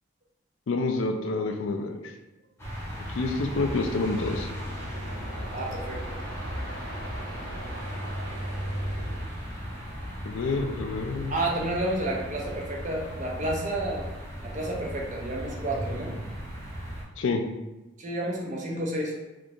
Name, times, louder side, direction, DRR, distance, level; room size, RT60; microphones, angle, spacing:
voice 1, 0.7-2.0 3.1-4.5 10.2-11.3 17.2-17.4, left 3 dB, 70° left, 5 dB, 0.4 m, -28 dB
sound 1, 2.6-17.0, equal, 15° left, 0.6 m, -36 dB
sound 2, 3.0-9.2, right 1 dB, 85° right, 1.2 m, -43 dB
voice 2, 5.5-6.1 11.3-14.1 14.4-16.2 18.0-19.2, right 1 dB, 35° right, -1 dB, 0.5 m, -31 dB
3.5 x 2.8 x 2.5 m, 1.0 s
head